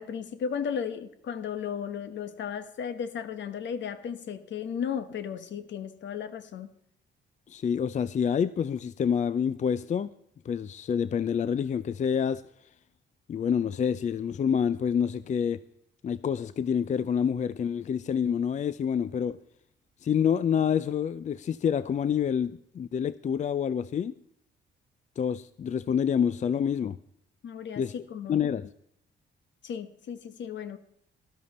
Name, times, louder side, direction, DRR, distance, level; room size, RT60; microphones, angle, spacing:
voice 1, 0.0-6.7 27.4-27.8 28.1-28.4 29.6-30.8, left 7 dB, 65° left, 1.3 m, -35 dB
voice 2, 7.5-10.1 10.5-12.4 13.3-15.6 16.0-19.4 20.0-24.1 25.2-27.0 27.8-27.9 28.3-28.7, left 7 dB, 40° left, 0.4 m, -27 dB
13.0 x 13.0 x 4.2 m
cardioid pair, 90°, 20 cm